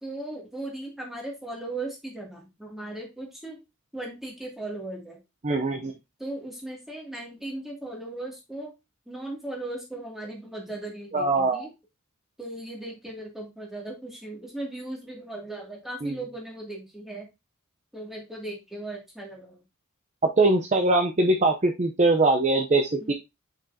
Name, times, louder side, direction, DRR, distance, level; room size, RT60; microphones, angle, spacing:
voice 1, 0.0-3.6 3.9-5.2 6.2-8.7 9.1-11.7 12.4-17.3 17.9-19.6 23.0-23.1, right 2 dB, ahead, -2 dB, 2.2 m, -37 dB
voice 2, 5.4-5.9 11.1-11.7 16.0-16.1 20.4-23.1, right 2 dB, 30° right, 4 dB, 0.6 m, -22 dB
6.9 x 6.0 x 2.7 m, 0.23 s
head